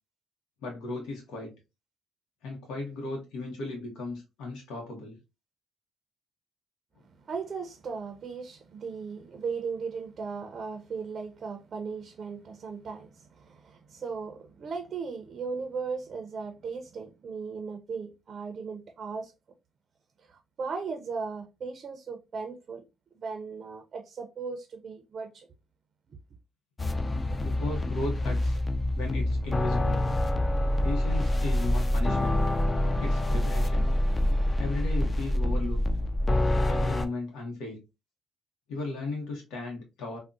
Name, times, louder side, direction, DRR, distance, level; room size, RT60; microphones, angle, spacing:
voice 1, 0.6-1.5 2.4-5.2 27.4-28.6 28.9-30.0 30.8-32.4 33.0-33.9 34.6-35.8 36.7-37.8 38.7-40.2, left 2 dB, 90° left, 0.7 m, -36 dB
voice 2, 7.0-19.3 20.2-22.8 23.2-25.5 26.1-26.2, right 5 dB, 50° right, 0.4 m, -37 dB
sound 1, 26.8-37.1, left 1 dB, 25° left, 0.4 m, -26 dB
3.5 x 2.0 x 2.5 m
cardioid pair, 90°, 0 cm